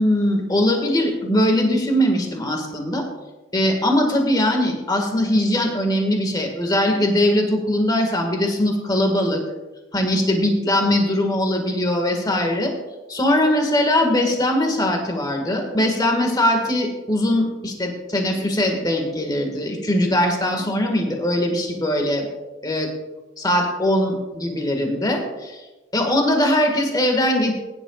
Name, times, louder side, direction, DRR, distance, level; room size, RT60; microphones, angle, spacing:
voice 1, 0.0-3.0 3.5-9.4 9.9-12.7 13.1-22.3 22.6-22.9 23.4-25.6 25.9-27.5, left 1 dB, 20° left, 2 dB, 1.8 m, -21 dB
21.0 x 10.5 x 2.4 m, 1.1 s
head